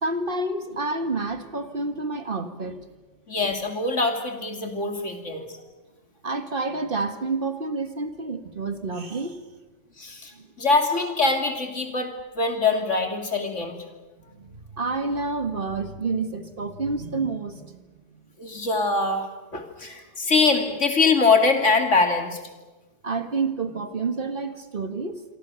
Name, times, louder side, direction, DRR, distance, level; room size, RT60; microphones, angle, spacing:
voice 1, 0.0-2.8 6.2-9.4 10.4-10.5 14.3-18.1 23.0-25.3, right 3 dB, 45° right, 9 dB, 1.8 m, -29 dB
voice 2, 3.3-5.5 10.0-10.3 10.6-13.8 18.4-19.3 19.5-22.4, left 3 dB, 85° left, 5 dB, 3.2 m, -23 dB
27.0 x 24.0 x 7.0 m, 1.2 s
omnidirectional pair, 1.2 m